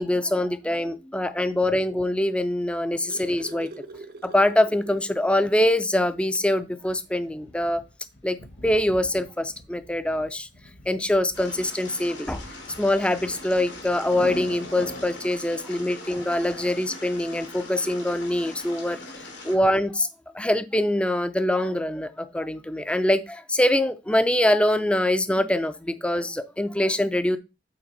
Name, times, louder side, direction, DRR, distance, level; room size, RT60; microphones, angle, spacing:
voice 1, 0.0-3.7 4.2-7.8 8.2-8.4 8.6-10.5 10.9-12.4 12.8-19.0 19.4-20.1 20.3-27.4, left 1 dB, 5° left, 11 dB, 0.5 m, -24 dB
sound 1, 2.8-5.4 5.8-5.9 6.3-6.5 7.6-7.7, right 2 dB, 55° right, 0.8 m, -43 dB
Thunder, 6.8-15.8, left 1 dB, 65° left, 1.4 m, -43 dB
sound 2, 11.3-19.6, left 2 dB, 90° left, 2.5 m, -41 dB
8.7 x 4.1 x 4.1 m, 0.27 s
head